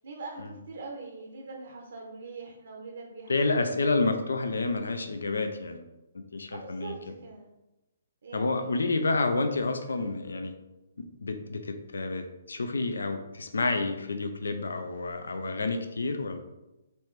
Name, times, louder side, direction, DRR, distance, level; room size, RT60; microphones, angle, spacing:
voice 1, 0.0-3.6 6.5-7.5 8.2-8.8 9.1-9.3 9.8-10.1, right 3 dB, 75° right, 1 dB, 0.7 m, -43 dB
voice 2, 3.3-5.8 6.1-6.9 8.3-10.5 11.0-16.4, left 3 dB, 90° left, 7 dB, 0.5 m, -29 dB
4.1 x 3.3 x 3.2 m, 0.97 s
hypercardioid pair, 150°, 0 cm